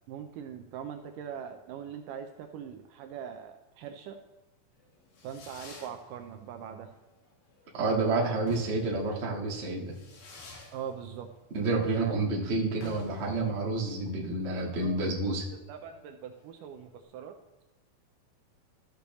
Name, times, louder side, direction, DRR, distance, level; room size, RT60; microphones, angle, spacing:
voice 1, 0.1-4.2 5.2-6.9 10.7-11.3 11.8-12.2 14.2-15.0 15.3-15.4 15.7-17.4, right 8 dB, 80° right, 5 dB, 2.0 m, -42 dB
Fireworks, 4.8-17.0, left 3 dB, 80° left, 3.7 m, -51 dB
voice 2, 7.7-9.9 11.5-15.5, right 2 dB, 50° right, -3 dB, 0.7 m, -29 dB
14.0 x 6.8 x 3.0 m, 1.1 s
omnidirectional pair, 4.2 m